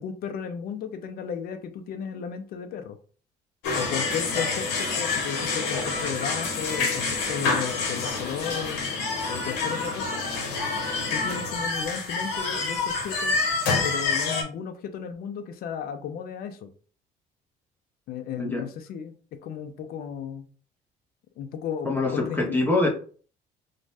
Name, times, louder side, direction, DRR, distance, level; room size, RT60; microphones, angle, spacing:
voice 1, 0.0-3.0 3.7-8.8 9.3-10.2 11.1-13.4 13.8-16.7 18.1-20.5 21.4-22.6, left 7 dB, 65° left, 8 dB, 0.5 m, -34 dB
sound 1, 3.6-14.4, left 4 dB, 90° left, 0.9 m, -27 dB
voice 2, 21.8-22.9, left 2 dB, 10° left, -2 dB, 1.0 m, -24 dB
2.5 x 2.2 x 3.2 m, 0.41 s
cardioid pair, 110°, 17 cm